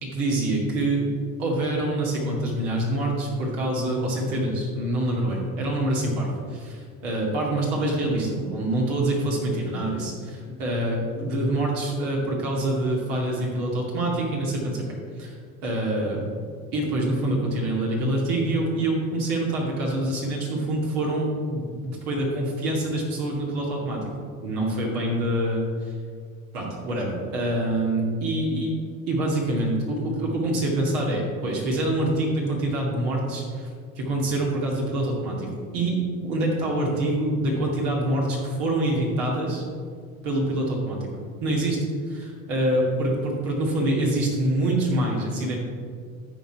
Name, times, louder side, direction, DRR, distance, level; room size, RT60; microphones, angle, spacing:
voice 1, 0.0-1.0 1.4-14.8 15.2-15.4 15.6-16.3 16.7-24.0 24.4-26.0 26.5-28.7 29.1-33.7 34.0-36.0 36.2-39.6 40.2-41.1 41.4-41.8 42.1-45.6, right 1 dB, 60° right, -2 dB, 2.3 m, -25 dB
13.5 x 4.6 x 4.7 m, 2.1 s
hypercardioid pair, 70°, 42 cm